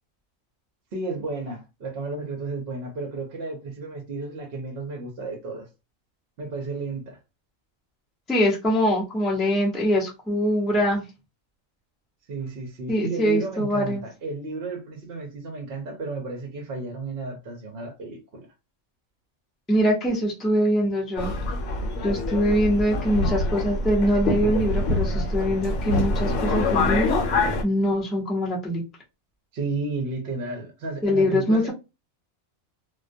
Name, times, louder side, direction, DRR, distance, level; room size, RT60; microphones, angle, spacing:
voice 1, 0.9-5.7 6.4-7.2 12.3-18.5 29.5-31.7, right 3 dB, 60° right, 0.7 m, -33 dB
voice 2, 8.3-11.0 12.9-14.0 19.7-21.3 22.0-27.2 27.6-28.8 31.0-31.7, equal, ahead, 0.3 m, -23 dB
Subway metro underground, 21.2-27.6, left 2 dB, 65° left, 0.9 m, -25 dB
2.3 x 2.2 x 2.5 m
omnidirectional pair, 1.5 m